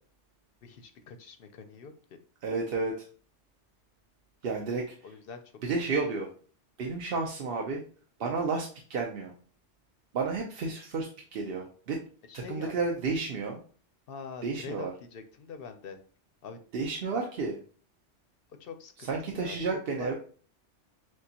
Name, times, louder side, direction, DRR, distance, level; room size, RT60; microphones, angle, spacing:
voice 1, 0.6-1.9 5.0-5.7 12.3-12.7 14.1-16.0 16.4-16.6 18.6-19.6 20.0-20.1, left 5 dB, 60° left, 8 dB, 0.7 m, -44 dB
voice 2, 2.4-2.9 4.4-4.9 5.6-6.3 6.8-7.8 8.2-9.3 10.1-12.0 12.3-13.6 14.4-14.9 16.7-17.6 19.1-20.1, right 4 dB, 60° right, 1 dB, 0.8 m, -31 dB
6.3 x 2.3 x 2.8 m, 0.41 s
omnidirectional pair, 1.2 m